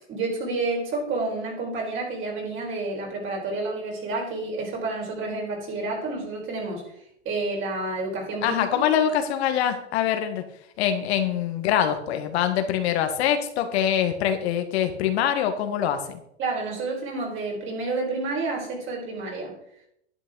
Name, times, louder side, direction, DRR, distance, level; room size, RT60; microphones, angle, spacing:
voice 1, 0.1-6.8 7.2-8.8 16.4-19.5, right 3 dB, 35° right, -1 dB, 4.8 m, -29 dB
voice 2, 8.4-10.4 10.8-16.2, left 9 dB, 65° left, 7 dB, 1.6 m, -24 dB
10.5 x 9.1 x 3.9 m, 0.74 s
hypercardioid pair, 115°, 34 cm